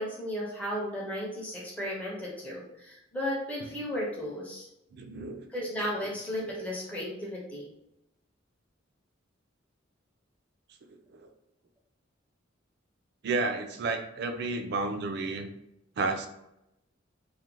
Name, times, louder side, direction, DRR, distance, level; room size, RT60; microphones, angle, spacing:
voice 1, 0.0-4.7 5.5-7.7, equal, 10° left, -5 dB, 0.5 m, -34 dB
voice 2, 4.9-5.5 11.1-11.3 13.2-15.5 16.0-16.3, right 3 dB, 55° right, 6 dB, 0.3 m, -31 dB
2.4 x 2.1 x 2.9 m, 0.85 s
head